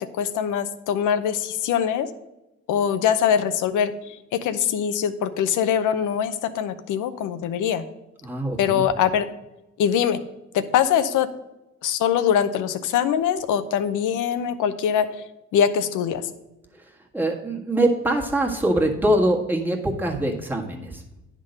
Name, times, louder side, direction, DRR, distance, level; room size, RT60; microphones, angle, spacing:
voice 1, 0.2-2.1 2.7-4.2 4.4-7.8 8.6-9.3 9.8-10.2 10.5-11.3 11.8-15.1 15.5-16.3, left 8 dB, 85° left, 11 dB, 0.7 m, -22 dB
voice 2, 8.2-8.9 17.1-21.0, right 1 dB, 5° right, -1 dB, 1.5 m, -23 dB
10.0 x 3.8 x 6.5 m, 0.96 s
cardioid pair, 90°, 30 cm